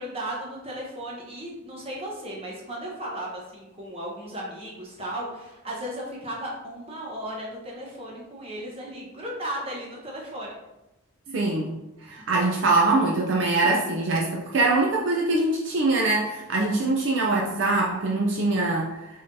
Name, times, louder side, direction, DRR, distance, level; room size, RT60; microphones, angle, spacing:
voice 1, 0.0-10.5 12.0-12.1, right 1 dB, 25° right, -3 dB, 1.0 m, -35 dB
voice 2, 11.3-11.7 12.0-19.1, right 2 dB, 60° right, -2 dB, 0.5 m, -23 dB
5.4 x 3.6 x 2.7 m, 0.98 s
head